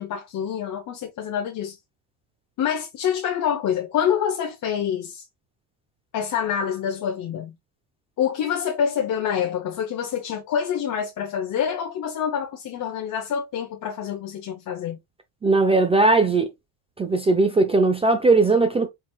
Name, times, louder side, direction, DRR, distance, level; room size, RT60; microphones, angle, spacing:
voice 1, 0.0-1.8 2.6-5.2 6.1-7.5 8.2-15.0, left 8 dB, 45° left, 0.9 m, -26 dB
voice 2, 15.4-16.5 17.0-18.9, right 3 dB, 15° right, 0.4 m, -18 dB
4.6 x 3.9 x 2.3 m
cardioid pair, 120°, 46 cm